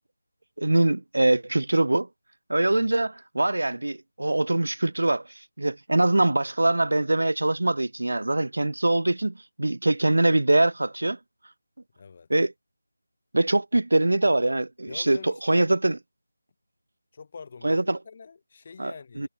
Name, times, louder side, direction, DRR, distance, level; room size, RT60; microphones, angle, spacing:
voice 1, 0.6-2.1 2.5-5.3 5.6-11.2 12.3-12.5 13.3-16.0 17.6-18.0 18.8-19.3, right 2 dB, 75° right, 2.1 m, -23 dB
voice 2, 12.0-12.3 14.9-15.7 17.1-19.3, left 5 dB, 25° left, 6.4 m, -44 dB
figure-of-eight pair, 175°, 0 cm